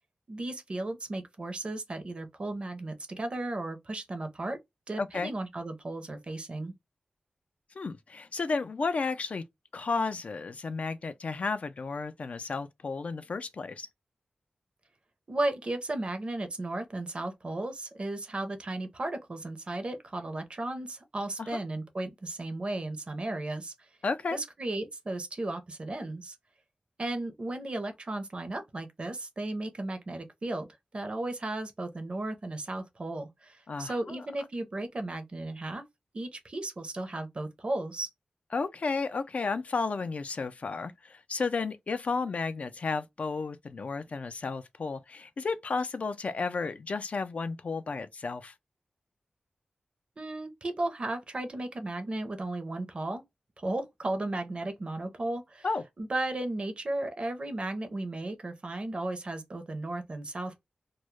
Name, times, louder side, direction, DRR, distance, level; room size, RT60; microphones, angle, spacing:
voice 1, 0.3-4.6 4.9-6.7 15.3-23.7 24.3-26.4 27.0-30.7 30.9-35.8 36.1-38.1 50.2-53.2 53.6-55.7 56.0-60.6, right 2 dB, 40° right, 0.6 m, -35 dB
voice 2, 5.0-5.3 7.8-9.4 9.7-13.9 21.4-21.6 24.0-24.4 33.7-34.3 38.5-48.5 55.6-55.8, left 4 dB, 55° left, 0.3 m, -33 dB
2.2 x 2.0 x 3.0 m
wide cardioid pair, 90°, 3 cm